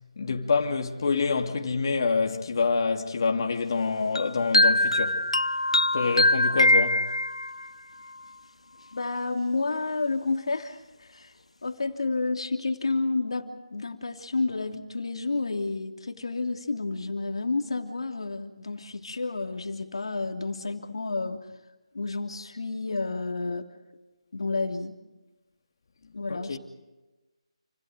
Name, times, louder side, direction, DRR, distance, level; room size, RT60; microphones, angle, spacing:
voice 1, 0.2-5.2 5.9-7.0 26.3-26.6, left 4 dB, 45° left, 2.9 m, -26 dB
sound 1, 4.2-7.7, left 2 dB, 80° left, 0.9 m, -22 dB
voice 2, 8.9-11.3 11.6-21.5 21.9-23.7 24.3-25.0 26.1-26.6, left 3 dB, 65° left, 3.0 m, -30 dB
29.5 x 26.5 x 5.1 m
figure-of-eight pair, 155°, 3 cm